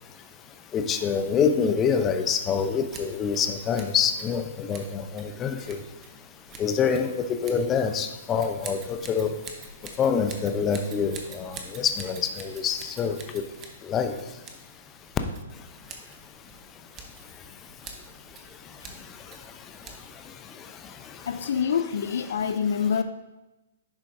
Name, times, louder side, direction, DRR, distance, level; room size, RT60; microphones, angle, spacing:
voice 1, 0.7-5.8 6.6-9.3 10.0-13.4 13.8-14.2 20.6-21.3, left 6 dB, 20° left, 7 dB, 0.6 m, -26 dB
Scissors, 2.8-20.3, right 4 dB, 25° right, 0.9 m, -47 dB
voice 2, 21.3-23.0, left 7 dB, 70° left, 9 dB, 0.3 m, -26 dB
10.5 x 4.4 x 2.6 m, 1.0 s
hypercardioid pair, 135°, 0 cm